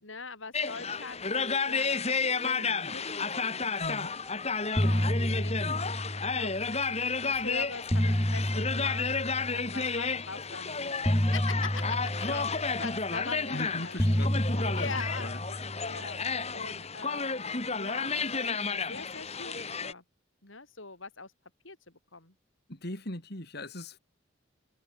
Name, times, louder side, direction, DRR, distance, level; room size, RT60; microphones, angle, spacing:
voice 1, 0.0-4.1 4.8-5.8 6.1-6.5 7.2-11.0 11.3-14.3 14.6-16.2 16.5-20.0 20.4-21.3 21.6-22.3, left 4 dB, 75° left, 5.2 m, -43 dB
sound 1, 0.5-19.9, left 4 dB, 30° left, 3.5 m, -32 dB
sound 2, 4.1-4.3 4.6-6.9 7.6-10.0 11.0-13.5 14.0-16.6, equal, 15° left, 1.8 m, -30 dB
voice 2, 13.5-15.4 22.7-24.0, left 1 dB, 50° left, 4.4 m, -40 dB
open air
head